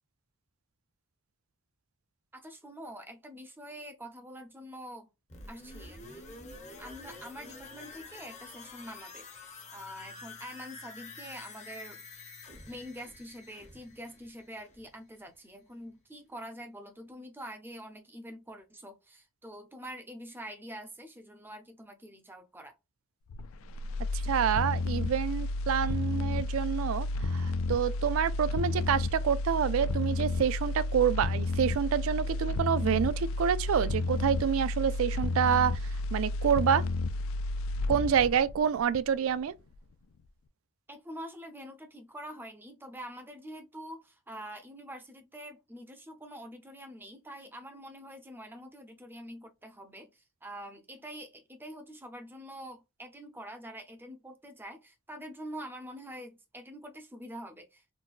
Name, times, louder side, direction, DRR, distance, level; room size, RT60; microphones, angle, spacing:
voice 1, 2.3-5.1 5.5-6.3 6.8-9.3 9.7-12.0 12.7-22.7 40.9-57.9, equal, 10° right, 0.5 m, -45 dB
sound 1, 5.3-15.0 15.3-15.4, left 3 dB, 35° left, 0.7 m, -48 dB
sound 2, 23.3-39.4 39.7-39.8, left 2 dB, 70° left, 0.3 m, -31 dB
voice 2, 24.1-35.8 36.1-36.8 37.9-39.5, right 8 dB, 70° right, 0.3 m, -28 dB
3.9 x 2.2 x 2.4 m
head